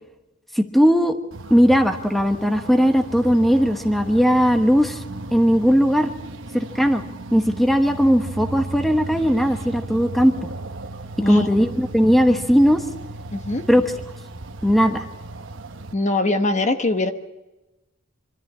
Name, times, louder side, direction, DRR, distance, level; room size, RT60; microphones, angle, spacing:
voice 1, 0.5-1.2 1.5-5.0 5.3-6.1 6.5-7.1 7.3-10.5 11.3-12.8 13.7-13.8 14.6-15.0, equal, ahead, 6 dB, 1.2 m, -18 dB
sound 1, 1.3-15.9, right 2 dB, 65° right, 1.1 m, -35 dB
voice 2, 13.3-13.6 15.9-17.1, left 2 dB, 35° left, 7 dB, 1.0 m, -22 dB
25.0 x 13.5 x 8.7 m, 1.0 s
head